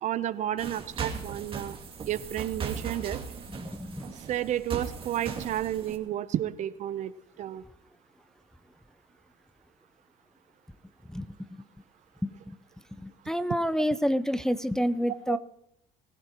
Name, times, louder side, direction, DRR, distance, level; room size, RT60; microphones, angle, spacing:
voice 1, 0.0-1.8 2.1-3.2 4.2-7.1 7.4-7.6 15.1-15.4, right 12 dB, 55° right, 14 dB, 0.8 m, -31 dB
sound 1, 0.6-6.0, right 5 dB, 35° right, 2.6 m, -38 dB
voice 2, 3.6-4.0 11.1-11.3 12.2-12.6 13.0-15.4, equal, 5° left, 11 dB, 0.6 m, -28 dB
23.5 x 15.5 x 3.0 m, 0.78 s
supercardioid pair, 95°, 15 cm